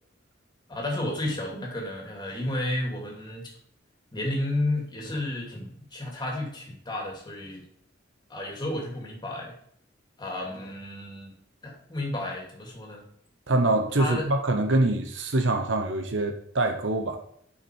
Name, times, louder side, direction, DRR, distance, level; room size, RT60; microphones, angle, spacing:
voice 1, 0.7-3.5 4.1-7.6 8.3-9.5 10.2-11.3 11.6-13.1 14.0-14.3, left 1 dB, 25° left, -1 dB, 2.5 m, -32 dB
voice 2, 13.5-17.2, right 2 dB, 70° right, 5 dB, 1.0 m, -24 dB
8.4 x 5.9 x 4.6 m, 0.65 s
head